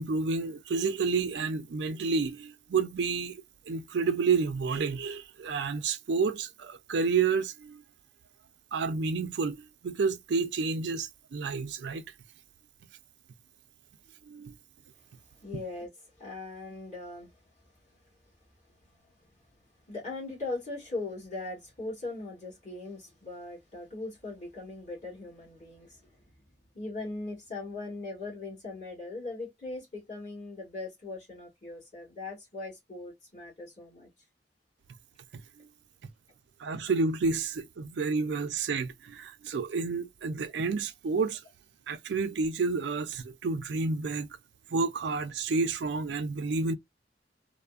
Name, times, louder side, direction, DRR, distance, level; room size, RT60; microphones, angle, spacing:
voice 1, 0.0-3.4 3.7-7.8 8.7-12.0 14.3-14.5 35.6-35.7 36.6-41.4 41.9-44.3 44.7-46.8, right 4 dB, 65° right, 0.4 m, -30 dB
voice 2, 15.4-15.9 16.2-17.5 18.7-19.4 19.9-26.2 26.7-34.1, left 2 dB, 40° left, 1.9 m, -40 dB
3.2 x 2.1 x 2.3 m
head